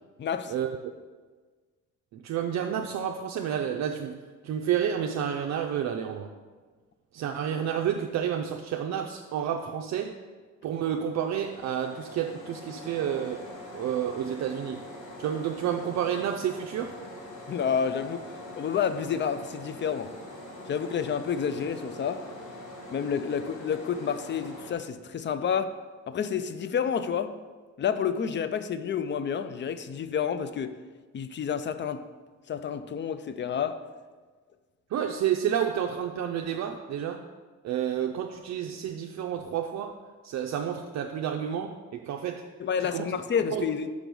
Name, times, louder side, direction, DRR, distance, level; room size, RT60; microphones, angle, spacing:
voice 1, 0.2-0.5 17.5-18.3 18.6-20.1 20.7-22.2 22.9-25.7 26.1-27.3 27.8-30.8 31.1-32.0 32.5-33.8 42.6-43.9, left 7 dB, 40° left, 12 dB, 0.5 m, -29 dB
voice 2, 2.1-4.2 4.4-6.3 7.1-10.2 10.6-13.5 13.7-14.8 15.2-17.0 34.9-37.2 37.6-39.9 40.2-42.5 42.9-43.1 43.5-43.6, right 9 dB, 60° right, 3 dB, 0.5 m, -30 dB
sound 1, 11.1-24.7, left 1 dB, 90° left, 1.4 m, -44 dB
5.2 x 5.1 x 6.1 m, 1.4 s
cardioid pair, 90°, 30 cm